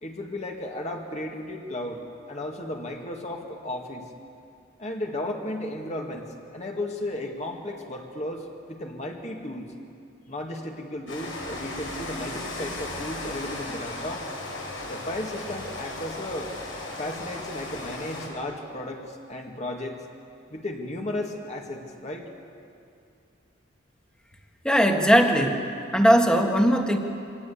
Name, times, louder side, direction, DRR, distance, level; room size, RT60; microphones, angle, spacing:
voice 1, 0.0-4.1 4.8-6.3 6.5-9.7 10.3-14.3 14.9-16.6 17.0-20.0 20.5-22.3, left 1 dB, 35° left, 1 dB, 2.0 m, -34 dB
Rain, 11.1-18.3, left 2 dB, 90° left, 6.1 m, -36 dB
voice 2, 24.6-27.0, equal, 5° left, 4 dB, 1.6 m, -20 dB
24.5 x 18.5 x 8.5 m, 2.5 s
head